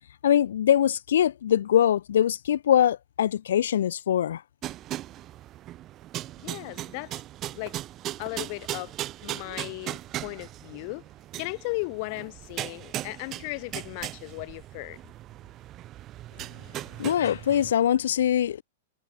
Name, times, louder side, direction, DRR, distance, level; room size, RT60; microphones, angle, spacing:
voice 1, 0.2-4.4 17.0-18.6, left 10 dB, 80° left, 0.5 m, -23 dB
sound 1, 4.6-17.7, right 14 dB, 30° right, 0.7 m, -38 dB
voice 2, 6.4-7.2 7.5-7.8 8.2-8.9 9.2-11.0 11.4-15.0, left 33 dB, 45° left, 4.7 m, -36 dB
hypercardioid pair, 140°, 0 cm